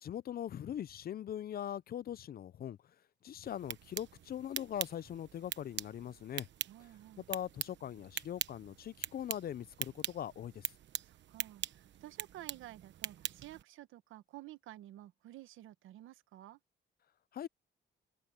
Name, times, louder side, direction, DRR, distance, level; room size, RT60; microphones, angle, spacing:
voice 1, 0.0-2.8 3.2-6.5 7.3-10.7 17.3-17.5, left 10 dB, 50° left, 0.5 m, -41 dB
sound 1, 3.4-13.6, right 11 dB, 65° right, 1.0 m, -43 dB
voice 2, 6.7-7.3 11.0-16.6, right 14 dB, 85° right, 1.2 m, -52 dB
cardioid pair, 90°, 20 cm